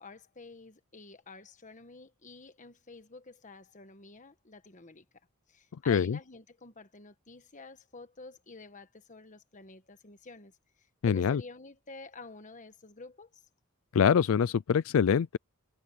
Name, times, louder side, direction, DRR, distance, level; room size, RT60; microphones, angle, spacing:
voice 1, 0.0-5.0 5.5-13.4, left 3 dB, 35° left, 1.4 m, -50 dB
voice 2, 5.9-6.2 11.0-11.4 13.9-15.4, left 7 dB, 75° left, 0.4 m, -24 dB
head